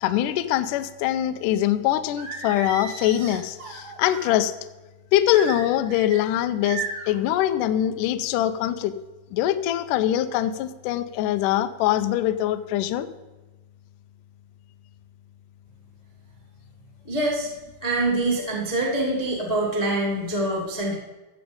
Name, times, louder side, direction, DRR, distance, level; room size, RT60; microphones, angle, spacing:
voice 1, 0.0-4.5 5.1-8.9 9.3-13.1, left 12 dB, 85° left, 11 dB, 1.8 m, -23 dB
Singing, 2.2-4.3 5.3-6.2 6.6-7.2, right 5 dB, 45° right, 3.0 m, -35 dB
voice 2, 17.0-17.5 17.8-20.9, right 2 dB, 25° left, -3 dB, 0.7 m, -25 dB
16.0 x 7.1 x 5.3 m, 1.2 s
omnidirectional pair, 4.5 m